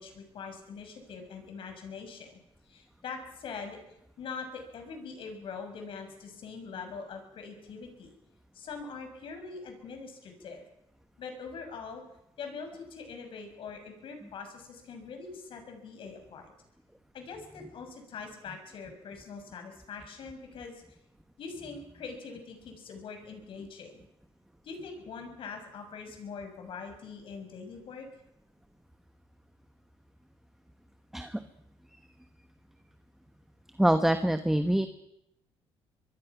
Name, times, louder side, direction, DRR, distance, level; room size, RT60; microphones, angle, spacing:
voice 1, 0.0-2.4 2.7-3.8 4.2-8.1 8.5-10.6 11.2-12.0 12.4-16.5 17.1-20.8 21.4-24.0 24.6-28.1, left 5 dB, 60° left, 5 dB, 6.3 m, -43 dB
voice 2, 33.8-34.9, right 1 dB, 5° right, 8 dB, 1.2 m, -25 dB
24.5 x 22.5 x 6.1 m, 0.82 s
cardioid pair, 115°, 10 cm